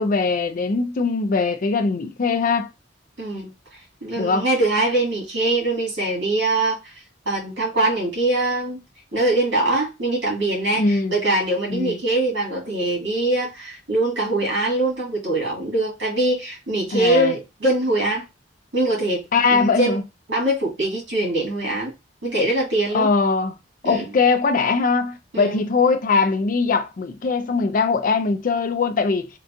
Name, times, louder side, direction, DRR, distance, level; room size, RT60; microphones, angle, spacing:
voice 1, 0.0-2.7 4.2-4.5 10.8-11.2 11.7-12.0 16.9-17.3 19.3-20.0 22.9-23.5 23.8-29.3, left 4 dB, 45° left, 0.4 m, -21 dB
voice 2, 3.2-3.5 4.0-6.9 7.3-8.8 9.1-18.2 18.7-19.2 19.5-20.0 20.3-21.9 22.2-23.1 23.8-24.0 25.3-25.6, right 2 dB, 80° right, 1.9 m, -22 dB
3.8 x 2.3 x 2.5 m
head